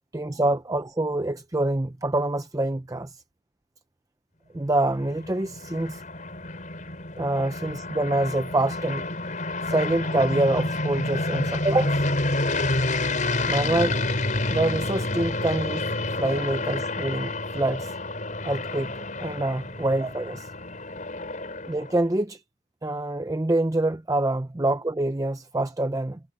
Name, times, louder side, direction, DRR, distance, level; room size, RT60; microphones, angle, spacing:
voice 1, 0.1-3.1 4.5-6.0 7.2-9.1 9.6-12.0 13.4-14.0 14.5-17.9 18.4-18.9 19.2-20.5 21.7-22.4 22.8-26.2, right 2 dB, 20° right, 0.6 m, -26 dB
sound 1, 4.8-22.0, left 2 dB, 45° left, 5.6 m, -29 dB
head